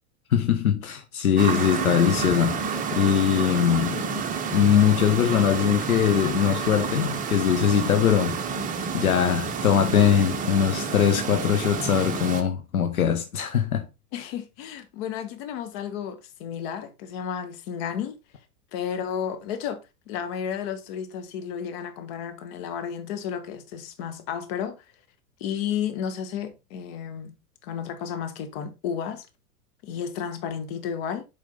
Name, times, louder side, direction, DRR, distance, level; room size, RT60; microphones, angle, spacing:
voice 1, 0.3-4.1 4.5-8.4 8.9-13.8, left 8 dB, 65° left, 1.0 m, -22 dB
sound 1, 1.4-12.4, right 5 dB, 15° right, 1.0 m, -29 dB
voice 2, 14.1-18.2 18.7-19.8 20.1-24.8 25.4-27.3 27.6-29.3 29.8-31.2, left 8 dB, 40° left, 1.4 m, -32 dB
7.5 x 5.0 x 3.9 m
figure-of-eight pair, 95°, 45 cm